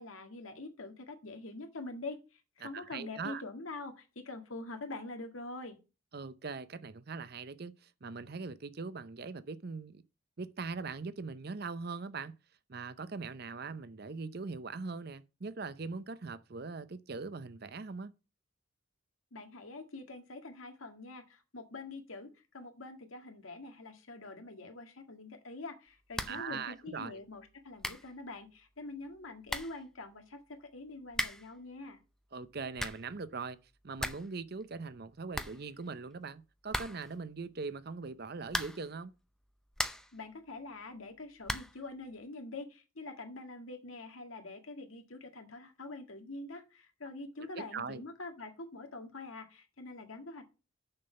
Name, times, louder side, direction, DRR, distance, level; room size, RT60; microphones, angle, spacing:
voice 1, 0.0-5.8 19.3-32.0 40.1-50.5, left 2 dB, 90° left, 1.8 m, -45 dB
voice 2, 2.6-3.4 6.1-10.0 10.4-12.3 12.7-18.1 26.3-27.2 32.3-33.6 33.8-39.1 47.4-48.0, right 4 dB, 50° right, 0.6 m, -41 dB
sound 1, 26.1-26.5 26.8-26.9 27.5-27.6 27.8-28.1 29.1-29.2 29.5-29.8 31.1-31.6 32.5-33.1 33.5-33.6 33.8-34.3 34.6-34.7 35.0-35.1 35.3-36.1 36.7-37.2 38.5-39.0 39.4-40.2 41.4-41.8, left 1 dB, 5° left, 0.5 m, -38 dB
6.6 x 6.1 x 6.7 m
head